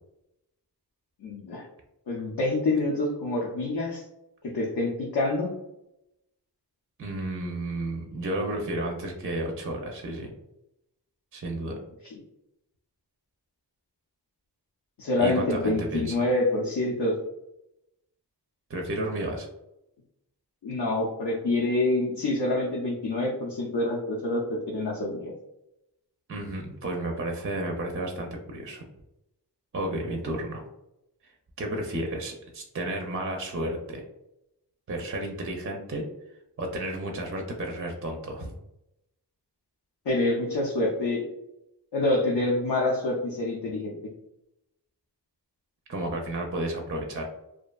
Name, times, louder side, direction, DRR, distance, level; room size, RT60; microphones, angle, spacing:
voice 1, 1.2-1.7 2.1-4.0 4.4-5.5 11.7-12.2 15.0-17.2 20.6-25.3 40.1-41.3 41.9-44.0, left 2 dB, 75° left, -2 dB, 0.5 m, -27 dB
voice 2, 7.0-10.3 11.3-11.7 15.2-16.2 18.7-19.5 26.3-28.8 29.7-30.6 31.2-31.3 31.6-34.0 34.9-36.0 36.6-38.6 45.9-47.2, right 1 dB, 35° right, 2 dB, 0.4 m, -32 dB
2.6 x 2.2 x 2.2 m, 0.87 s
wide cardioid pair, 45°, 41 cm